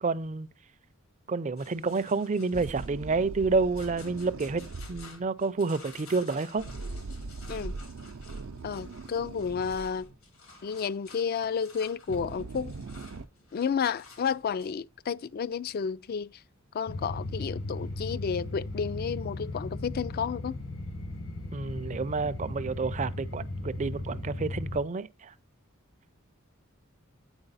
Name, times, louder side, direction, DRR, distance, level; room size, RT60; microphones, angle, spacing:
voice 1, 0.0-0.5 1.3-4.6 4.9-6.7 21.5-25.3, right 4 dB, 35° right, 0.4 m, -29 dB
sound 1, 1.6-14.8, left 4 dB, 85° left, 2.5 m, -53 dB
sound 2, 2.5-5.2 6.6-10.1 11.6-11.7 12.1-13.2, right 3 dB, 85° right, 0.6 m, -41 dB
voice 2, 8.6-10.1 10.6-12.7 13.5-16.3 16.7-20.6, left 6 dB, 45° left, 0.3 m, -31 dB
sound 3, 16.9-24.8, left 2 dB, 70° left, 1.7 m, -36 dB
8.9 x 4.5 x 4.0 m
head